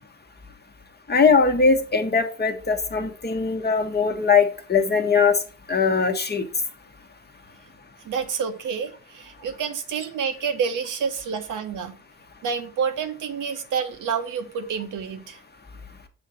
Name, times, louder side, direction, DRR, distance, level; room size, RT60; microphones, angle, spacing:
voice 1, 1.1-5.3 5.7-6.5, left 5 dB, 30° left, 1.1 m, -20 dB
voice 2, 8.0-12.0 12.4-15.4, right 6 dB, 65° right, 0.9 m, -28 dB
6.9 x 2.8 x 4.8 m
hypercardioid pair, 50°, 34 cm